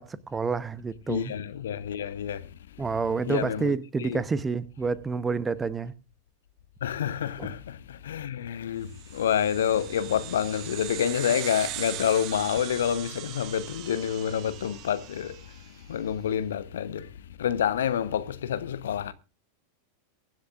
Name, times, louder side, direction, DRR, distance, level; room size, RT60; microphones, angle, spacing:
voice 1, 0.0-1.3 2.8-5.9 7.4-7.5, right 4 dB, 15° right, 0.9 m, -29 dB
voice 2, 1.1-2.4 3.3-4.2 6.8-15.3 15.9-17.1 17.4-19.1, left 9 dB, 60° left, 1.0 m, -28 dB
sound 1, 8.9-15.8, right 15 dB, 40° right, 0.7 m, -40 dB
23.5 x 10.5 x 2.5 m
figure-of-eight pair, 90°, 0 cm